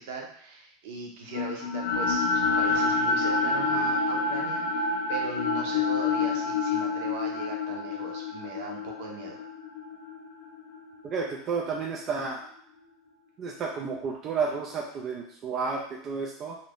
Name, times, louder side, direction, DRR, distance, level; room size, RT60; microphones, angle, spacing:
voice 1, 0.0-9.4, right 3 dB, 55° right, 1 dB, 0.8 m, -39 dB
sound 1, 1.3-11.5, left 3 dB, 85° left, 0.6 m, -28 dB
voice 2, 11.0-12.5 13.4-16.6, right 5 dB, 25° right, -2 dB, 0.3 m, -31 dB
2.7 x 2.5 x 3.4 m, 0.64 s
supercardioid pair, 175°, 0 cm